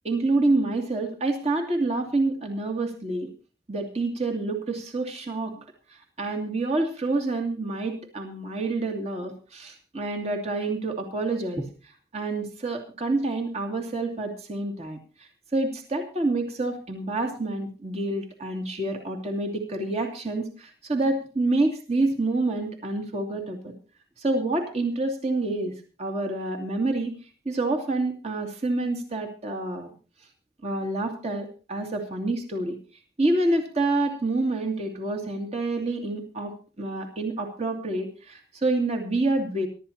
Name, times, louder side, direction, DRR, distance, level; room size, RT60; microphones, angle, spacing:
voice 1, 0.0-3.3 3.7-5.6 5.9-11.7 12.1-23.7 24.2-27.2 27.4-29.9 30.6-32.8 33.2-39.7, right 2 dB, 40° right, 3 dB, 2.6 m, -27 dB
24.0 x 12.5 x 2.9 m, 0.34 s
head